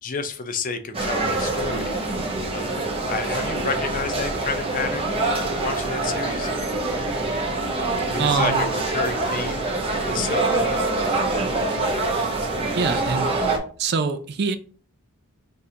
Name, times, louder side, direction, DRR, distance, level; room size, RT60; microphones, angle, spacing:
voice 1, 0.0-1.9 2.5-5.1 5.6-6.5 8.1-9.7 10.0-10.8, left 4 dB, 35° left, 9 dB, 0.5 m, -30 dB
sound 1, 0.9-13.6, right 2 dB, 25° right, 0.8 m, -25 dB
voice 2, 8.2-8.7 12.7-13.3 13.8-14.6, right 5 dB, 45° right, 10 dB, 0.4 m, -24 dB
6.1 x 2.5 x 2.7 m, 0.42 s
head